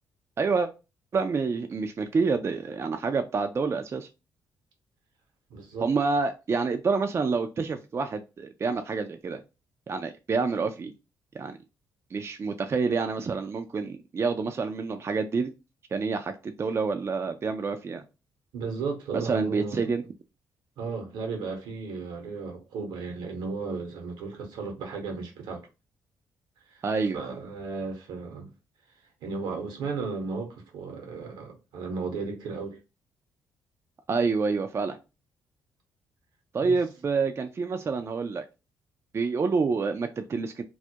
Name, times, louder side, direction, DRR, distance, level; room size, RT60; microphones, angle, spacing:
voice 1, 0.4-0.7 1.1-4.1 5.8-9.4 9.9-10.9 11.3-11.6 12.1-15.5 15.9-18.0 19.1-20.0 26.8-27.2 34.1-35.0 36.5-38.4 39.1-40.6, right 4 dB, 35° right, 0.3 m, -28 dB
voice 2, 5.5-5.9 18.5-19.9 20.8-25.7 26.7-26.8 27.1-28.5 29.2-32.8 36.6-36.8, right 4 dB, 80° right, 0.8 m, -35 dB
2.3 x 2.1 x 2.7 m
supercardioid pair, 55°, 8 cm